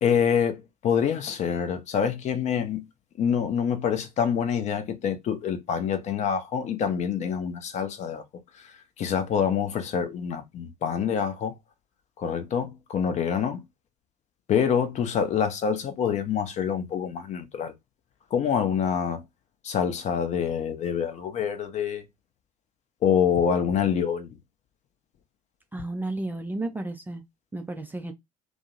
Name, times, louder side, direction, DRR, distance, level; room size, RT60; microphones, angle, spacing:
voice 1, 0.0-2.9 3.2-8.2 8.5-11.5 12.2-13.6 14.5-17.7 18.3-19.2 19.6-22.1 23.0-24.4, left 7 dB, 35° left, 0.6 m, -26 dB
voice 2, 25.7-27.2 27.5-28.1, right 2 dB, 10° right, 0.3 m, -32 dB
2.5 x 2.0 x 2.6 m
figure-of-eight pair, 60°, 20 cm